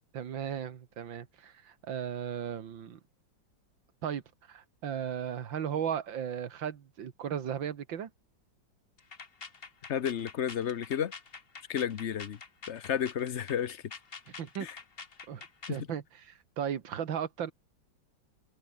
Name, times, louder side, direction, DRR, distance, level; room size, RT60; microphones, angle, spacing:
voice 1, 0.1-3.0 4.0-4.2 4.5-8.1 14.4-14.7 15.3-17.5, right 8 dB, 80° right, 2.3 m, -36 dB
sound 1, 9.0-15.8, left 5 dB, 35° left, 1.5 m, -47 dB
voice 2, 9.9-11.1 11.7-12.4 12.7-13.8 14.6-14.8 15.7-15.8, left 9 dB, 55° left, 0.8 m, -32 dB
omnidirectional pair, 2.1 m